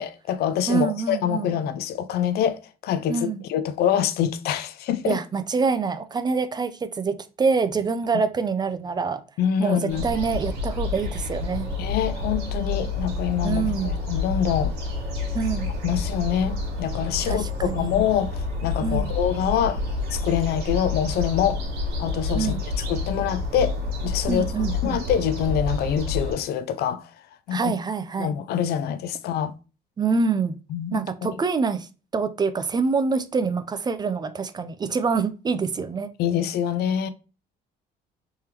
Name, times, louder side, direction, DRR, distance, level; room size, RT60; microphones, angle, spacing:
voice 1, 0.0-5.2 9.4-10.0 11.8-14.7 15.8-19.8 20.1-21.6 22.0-22.6 22.9-23.7 24.0-27.1 27.5-27.7 28.2-29.5 30.7-31.0 36.2-37.1, left 9 dB, 70° left, 0.5 m, -25 dB
voice 2, 0.7-1.5 3.1-3.4 5.1-9.2 9.6-11.7 13.4-14.0 15.3-15.7 17.2-17.9 18.8-19.1 22.3-22.6 24.3-25.0 27.5-28.3 30.0-30.5 30.9-31.9 32.1-36.1, right 5 dB, 25° right, 0.4 m, -25 dB
sound 1, 9.9-26.3, left 3 dB, 80° right, 1.5 m, -29 dB
3.6 x 3.3 x 2.8 m
cardioid pair, 110°, 17 cm